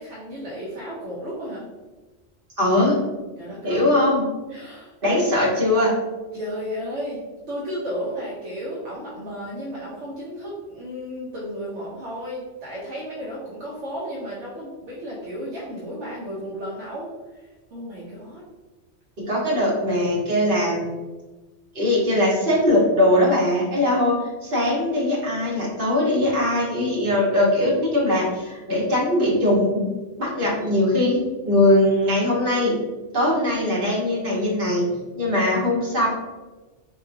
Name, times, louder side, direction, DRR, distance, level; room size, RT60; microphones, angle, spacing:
voice 1, 0.0-1.7 3.4-3.9 4.5-4.9 6.3-7.2 7.5-17.1 17.3-17.4 17.7-18.4, equal, 75° right, -7 dB, 1.1 m, -33 dB
voice 2, 2.6-3.0 3.6-4.3 4.5-4.6 5.0-5.9 19.2-20.9 21.7-24.1 24.4-29.9 30.2-32.8 33.1-34.9 35.2-36.1, left 1 dB, 50° right, -6 dB, 1.4 m, -20 dB
3.8 x 2.9 x 2.6 m, 1.2 s
omnidirectional pair, 1.2 m